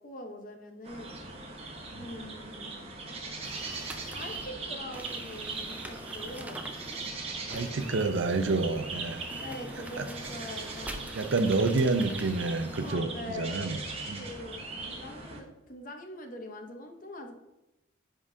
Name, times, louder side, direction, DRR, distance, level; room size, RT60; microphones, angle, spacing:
voice 1, 0.0-1.2 2.0-2.8 4.1-6.7 9.4-11.1 12.8-13.7 14.2-17.3, left 1 dB, 40° left, 4 dB, 0.8 m, -43 dB
sound 1, 0.9-15.4, right 3 dB, 30° right, 0.8 m, -40 dB
sound 2, 3.4-13.0, right 1 dB, 5° right, 0.3 m, -45 dB
voice 2, 7.5-9.3 10.0-10.1 11.1-13.8 14.1-14.2, right 3 dB, 70° right, 9 dB, 0.6 m, -28 dB
10.0 x 3.6 x 2.7 m, 0.97 s
head